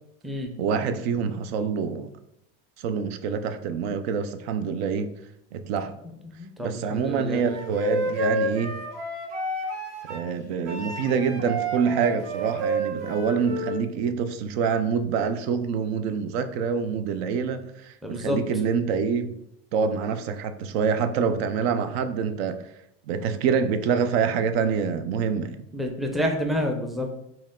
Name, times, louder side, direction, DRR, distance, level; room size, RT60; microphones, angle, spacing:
voice 1, 0.6-2.1 2.8-5.1 5.5-6.0 6.6-8.8 10.1-19.4 19.7-22.6 23.1-25.6, right 6 dB, 80° right, 0.6 m, -26 dB
voice 2, 6.2-7.4 18.0-18.4 25.7-27.1, equal, ahead, 0.4 m, -28 dB
Wind instrument woodwind instrument, 7.5-10.3 10.7-13.8, right 1 dB, 55° right, 1.1 m, -30 dB
4.4 x 3.2 x 3.7 m
supercardioid pair, 140°, 31 cm